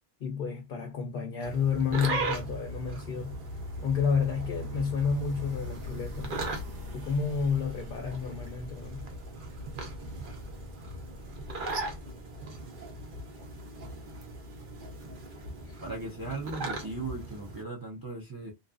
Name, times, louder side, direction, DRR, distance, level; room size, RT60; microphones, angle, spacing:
voice 1, 0.2-3.4 3.8-6.4 6.9-9.1 15.7-15.8, left 6 dB, 60° left, 0.6 m, -30 dB
sound 1, 1.4-17.6, right 2 dB, 50° right, 0.8 m, -39 dB
sound 2, 1.6-12.0, left 1 dB, 75° right, 1.2 m, -43 dB
voice 2, 15.8-18.5, right 3 dB, 25° right, 0.5 m, -37 dB
2.6 x 2.4 x 2.3 m
omnidirectional pair, 1.2 m